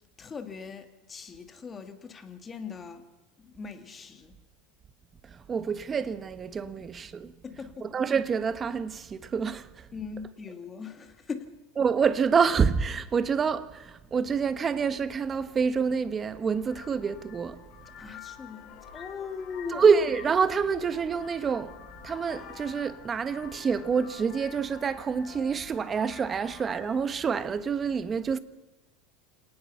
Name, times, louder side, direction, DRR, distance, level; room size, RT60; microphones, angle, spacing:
voice 1, 0.2-3.1 3.4-4.4 7.4-7.9 9.9-11.6 18.0-19.8, left 5 dB, 20° left, 2.3 m, -40 dB
voice 2, 5.2-9.9 11.7-17.6 19.7-21.8 22.0-28.4, right 6 dB, 25° right, 1.1 m, -27 dB
Vehicle horn car horn honking, 16.3-27.0, left 8 dB, 40° left, 5.0 m, -48 dB
28.0 x 19.0 x 5.8 m
supercardioid pair, 130°, 0 cm